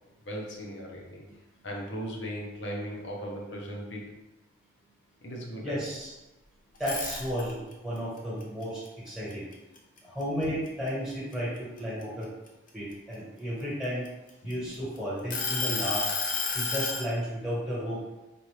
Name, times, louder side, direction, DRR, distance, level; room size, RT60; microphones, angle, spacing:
voice 1, 0.2-1.2 1.6-4.1 5.2-5.8 14.4-14.7, equal, 60° left, -1 dB, 0.8 m, -38 dB
voice 2, 5.6-6.1 6.8-9.4 10.0-12.3 12.7-14.1 14.4-16.1 16.5-18.0, equal, ahead, -8 dB, 1.3 m, -33 dB
sound 1, 6.8-7.7 8.2-10.0 10.4-10.7 11.1-12.9 13.6-14.8 15.3-17.1, left 4 dB, 40° left, 0.6 m, -31 dB
4.2 x 2.5 x 3.2 m, 1.0 s
head